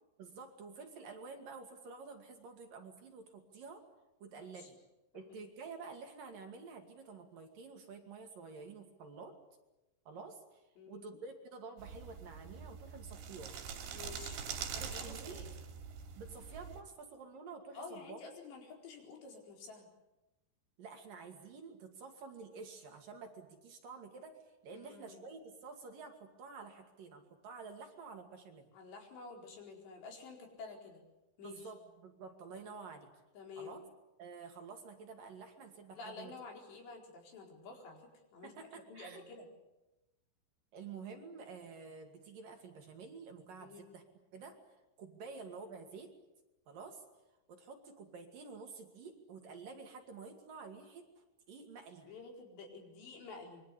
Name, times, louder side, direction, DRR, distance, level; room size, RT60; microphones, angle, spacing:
voice 1, 0.2-3.8 4.2-4.8 5.1-9.4 10.1-13.5 14.8-15.4 16.2-18.2 20.8-28.7 31.4-33.1 33.6-33.8 34.2-36.3 38.4-39.2 40.7-44.0 44.3-44.6 45.0-46.1 46.7-47.0 47.5-51.1 51.5-52.1, right 4 dB, 55° right, 3 dB, 3.7 m, -50 dB
voice 2, 10.8-11.2 13.9-14.4 14.7-15.5 17.7-19.9 24.7-25.3 28.7-31.0 31.4-31.7 33.3-33.8 36.0-38.5 38.9-39.5 43.6-43.9 45.2-45.3 52.1-53.6, left 4 dB, 70° left, 2 dB, 6.6 m, -50 dB
sound 1, 11.8-16.8, right 7 dB, 75° right, 5.0 m, -44 dB
26.0 x 23.0 x 8.5 m, 0.99 s
omnidirectional pair, 5.2 m